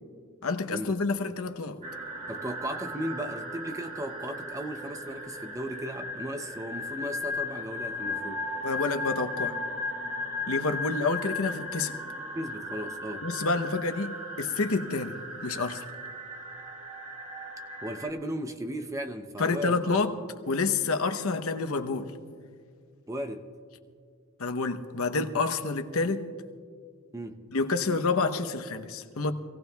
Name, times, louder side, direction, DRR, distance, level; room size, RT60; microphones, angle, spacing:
voice 1, 0.4-1.8 8.6-9.6 10.5-12.0 13.2-15.2 15.4-15.8 19.4-20.1 20.4-22.1 24.4-26.3 27.5-29.3, left 3 dB, 70° left, 0.8 m, -28 dB
sound 1, 1.8-18.1, left 2 dB, 35° right, 1.6 m, -36 dB
voice 2, 2.3-8.5 12.4-13.3 17.8-20.0 23.1-23.5 27.1-27.5, equal, 15° right, 0.5 m, -36 dB
26.0 x 17.5 x 2.3 m
head